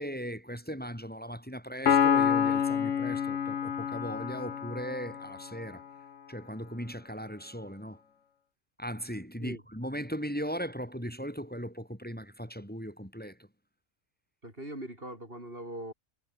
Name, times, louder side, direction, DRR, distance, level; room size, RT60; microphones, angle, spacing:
voice 1, 0.0-5.8 6.3-8.0 8.8-13.4, equal, 5° left, 7.4 m, -38 dB
Piano, 1.9-5.5, left 7 dB, 75° left, 1.5 m, -27 dB
voice 2, 14.4-15.9, right 1 dB, 45° right, 8.4 m, -41 dB
omnidirectional pair, 1.3 m